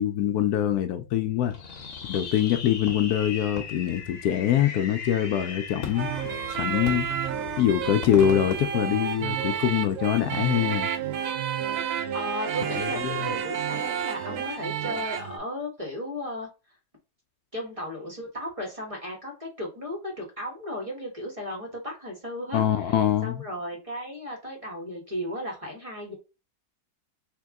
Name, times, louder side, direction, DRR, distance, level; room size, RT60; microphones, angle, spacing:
voice 1, 0.0-1.5 2.1-6.1 6.5-7.1 7.6-10.9 13.0-13.3 22.5-23.4, left 10 dB, 75° left, 1.0 m, -24 dB
Fireworks, 1.5-9.6, left 5 dB, 55° left, 1.2 m, -38 dB
sound 1, 5.9-15.4, right 8 dB, 65° right, 0.9 m, -31 dB
Bowed string instrument, 10.3-14.6, right 10 dB, 85° right, 0.5 m, -36 dB
voice 2, 12.1-16.5 17.5-26.1, left 1 dB, 20° right, 1.3 m, -35 dB
3.6 x 2.9 x 3.5 m
omnidirectional pair, 1.7 m